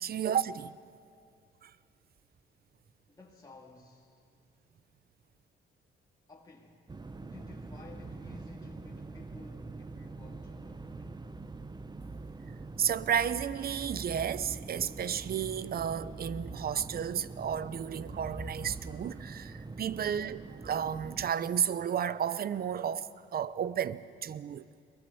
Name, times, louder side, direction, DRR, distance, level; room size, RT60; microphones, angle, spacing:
voice 1, 0.0-0.8 1.6-1.7 12.8-24.6, right 8 dB, 50° right, 0.7 m, -32 dB
voice 2, 3.1-4.2 6.3-6.8 7.1-11.3, left 2 dB, 20° left, 1.9 m, -54 dB
sound 1, 6.9-21.3, right 3 dB, 20° right, 0.9 m, -44 dB
23.0 x 20.0 x 7.0 m
cardioid pair, 90°, 20 cm